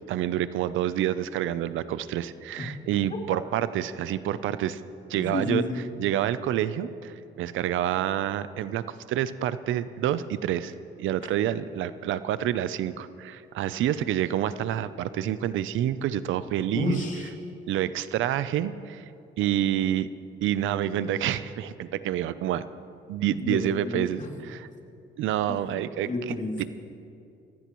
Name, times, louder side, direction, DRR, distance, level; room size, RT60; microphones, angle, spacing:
voice 1, 0.1-4.8 5.1-5.6 6.0-17.0 17.7-19.0 19.4-20.1 20.4-22.7 23.1-24.7 25.2-26.1, right 11 dB, 80° right, 14 dB, 0.6 m, -28 dB
voice 2, 5.1-5.9 16.7-17.3 23.4-24.3 25.5-25.6 26.0-26.6, left 3 dB, 40° left, 0 dB, 2.8 m, -30 dB
25.0 x 15.0 x 3.1 m, 2.6 s
cardioid pair, 90°, 20 cm